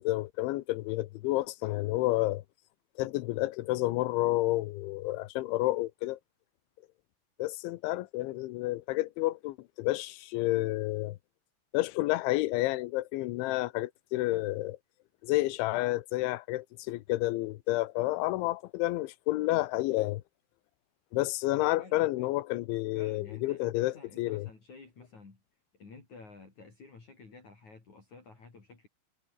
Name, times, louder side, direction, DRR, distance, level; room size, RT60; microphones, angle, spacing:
voice 1, 0.0-2.4 3.0-6.2 7.4-11.2 11.7-14.8 15.2-20.2 21.1-24.5, left 18 dB, 80° left, 3.2 m, -30 dB
voice 2, 21.6-22.3 22.9-25.4 25.7-28.9, left 4 dB, 40° left, 6.0 m, -51 dB
omnidirectional pair, 5.5 m